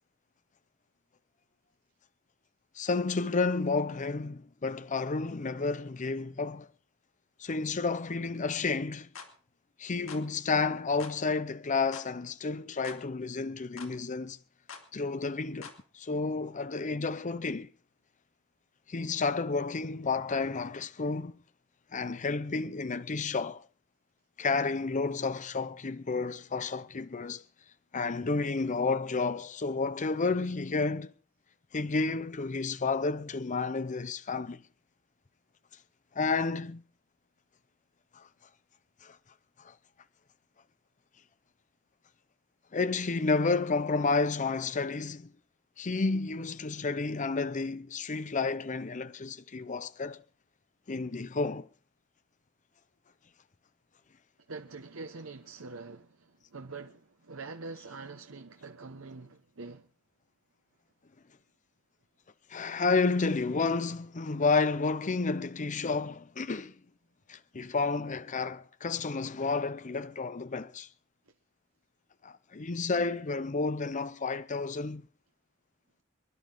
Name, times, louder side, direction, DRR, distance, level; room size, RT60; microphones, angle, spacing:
voice 1, 2.8-6.7 7.4-9.1 9.8-14.4 14.9-17.7 18.9-21.3 21.9-23.6 24.4-27.4 27.9-31.1 31.7-34.6 36.1-36.8 38.1-38.3 39.0-39.2 39.6-39.7 42.7-45.3 45.8-50.2 50.9-51.7 62.5-66.7 67.3-70.9 72.2-75.0, left 4 dB, 35° left, 0.6 m, -31 dB
sound 1, 9.1-9.3 10.1-10.3 11.0-11.2 11.9-12.1 12.8-13.0 13.8-13.9 14.7-14.9 15.6-15.8, left 5 dB, 75° left, 2.6 m, -45 dB
voice 2, 54.5-59.9, right 3 dB, 80° right, 1.0 m, -44 dB
26.0 x 11.0 x 3.9 m
head